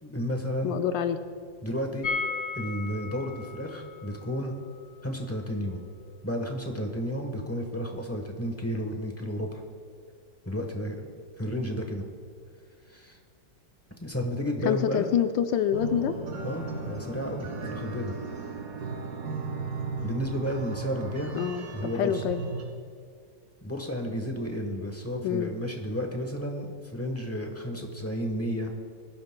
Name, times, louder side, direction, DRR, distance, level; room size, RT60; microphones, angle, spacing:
voice 1, 0.0-0.8 1.6-2.1 2.5-4.6 5.0-5.8 6.2-9.6 10.4-11.1 11.4-12.1 12.9-13.2 14.0-15.1 16.4-18.1 20.0-21.3 21.7-22.2 23.6-28.7, equal, 10° left, 2 dB, 0.7 m, -32 dB
voice 2, 0.6-1.2 14.7-16.1 21.3-21.7 22.0-22.4 25.2-25.5, left 9 dB, 80° left, 8 dB, 1.3 m, -26 dB
sound 1, 2.0-7.8 8.1-8.2 8.4-8.5, left 4 dB, 60° left, 0.6 m, -38 dB
sound 2, 15.7-22.6, right 4 dB, 65° right, 2.4 m, -36 dB
23.0 x 12.0 x 2.2 m, 2.1 s
omnidirectional pair, 2.0 m